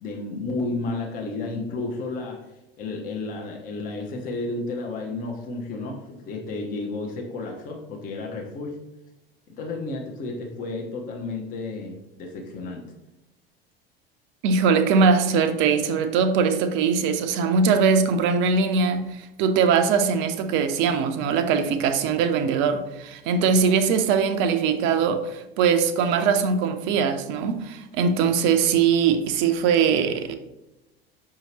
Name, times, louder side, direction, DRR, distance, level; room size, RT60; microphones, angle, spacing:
voice 1, 0.0-2.5 2.8-8.8 9.6-12.8, left 3 dB, 30° left, 0.6 m, -32 dB
voice 2, 14.4-30.3, right 6 dB, 40° right, 0.5 m, -21 dB
5.5 x 2.8 x 2.9 m
figure-of-eight pair, 75°, 30 cm